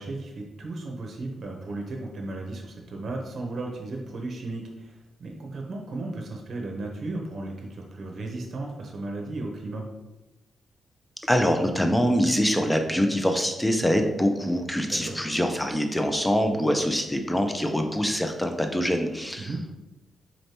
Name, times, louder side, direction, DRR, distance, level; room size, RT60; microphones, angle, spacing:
voice 1, 0.0-9.8 14.9-15.2 19.4-19.6, right 2 dB, 60° right, 1 dB, 0.7 m, -35 dB
voice 2, 11.2-19.5, equal, 10° left, 5 dB, 0.6 m, -24 dB
4.2 x 3.2 x 2.8 m, 1.0 s
supercardioid pair, 50°, 0 cm